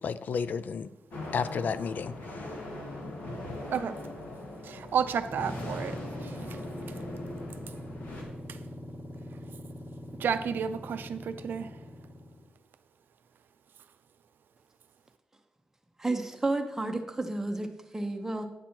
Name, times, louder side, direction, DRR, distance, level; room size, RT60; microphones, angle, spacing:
voice 1, 0.0-0.9 1.3-2.4, left 6 dB, 60° left, 0.4 m, -32 dB
sound 1, 1.1-8.2, left 1 dB, 75° left, 2.1 m, -41 dB
voice 2, 4.6-6.6 8.5-8.6 10.2-11.7, right 7 dB, 80° right, 0.5 m, -32 dB
sound 2, 5.1-12.5, left 1 dB, 35° left, 1.5 m, -42 dB
voice 3, 16.0-18.4, right 2 dB, 15° right, 0.8 m, -31 dB
9.4 x 6.1 x 4.4 m
wide cardioid pair, 130°, 3 cm